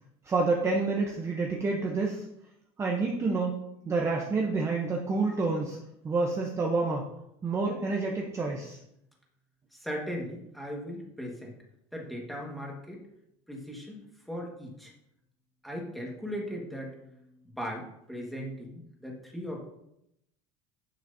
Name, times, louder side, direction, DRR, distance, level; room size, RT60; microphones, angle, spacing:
voice 1, 0.2-2.2 2.8-3.6 3.8-5.8 6.0-7.1 7.4-8.8, right 3 dB, 20° right, 0 dB, 0.8 m, -28 dB
voice 2, 9.7-11.5 11.9-13.0 13.5-14.0 14.3-14.9 15.6-17.0 17.4-19.6, equal, ahead, -2 dB, 1.6 m, -38 dB
10.0 x 6.2 x 2.7 m, 0.81 s
cardioid pair, 155°, 15 cm